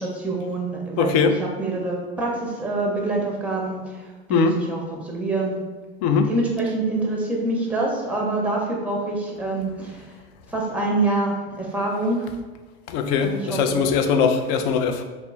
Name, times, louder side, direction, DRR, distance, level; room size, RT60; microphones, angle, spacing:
voice 1, 0.0-5.5 6.3-10.1 10.5-12.3 13.2-13.9, right 2 dB, 5° right, -1 dB, 0.7 m, -26 dB
voice 2, 1.0-1.4 4.3-4.6 6.0-6.3 12.9-15.0, left 5 dB, 45° left, 7 dB, 0.4 m, -21 dB
2.9 x 2.0 x 3.3 m, 1.3 s
hypercardioid pair, 100°, 32 cm